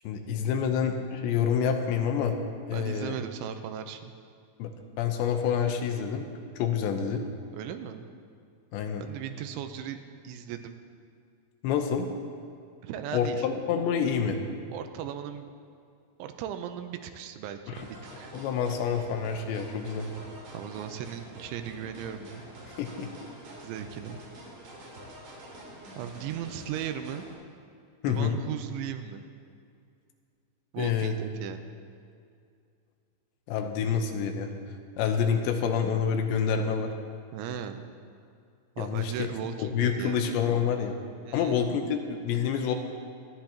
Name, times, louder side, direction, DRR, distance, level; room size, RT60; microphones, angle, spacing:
voice 1, 0.0-2.4 2.7-3.2 4.6-4.7 5.0-6.3 6.6-7.2 8.7-9.0 11.6-12.1 13.1-14.4 17.7-17.9 18.3-20.1 22.8-23.1 28.0-28.4 30.8-31.2 33.5-34.5 35.0-36.9 38.8-39.3 39.6-41.0 41.3-42.7, left 7 dB, 80° left, 5 dB, 3.0 m, -27 dB
voice 2, 2.7-4.1 7.5-8.1 9.0-10.0 10.2-10.8 12.8-13.5 14.7-15.5 16.2-18.3 20.5-22.4 23.6-24.2 26.0-27.3 28.1-29.2 30.7-31.7 37.3-37.8 38.8-40.3 41.2-41.7, right 9 dB, 90° right, 7 dB, 3.1 m, -37 dB
sound 1, 17.8-27.4, right 1 dB, 75° right, 5.4 m, -46 dB
25.5 x 10.5 x 2.9 m, 2.3 s
omnidirectional pair, 5.4 m